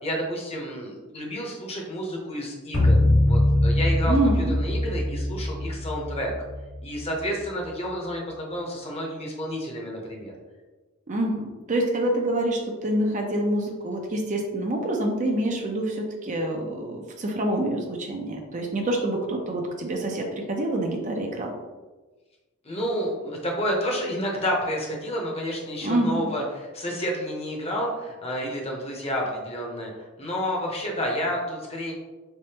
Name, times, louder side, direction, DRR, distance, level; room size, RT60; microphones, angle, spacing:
voice 1, 0.0-2.9 3.2-6.3 6.8-10.3 22.6-29.9 30.2-31.9, equal, 30° left, -1 dB, 0.8 m, -30 dB
sound 1, 2.7-7.2, left 1 dB, 65° left, 1.4 m, -22 dB
voice 2, 4.0-4.6 11.1-21.5 25.8-26.3, right 1 dB, 35° right, 1 dB, 0.5 m, -26 dB
4.1 x 3.4 x 2.9 m, 1.2 s
head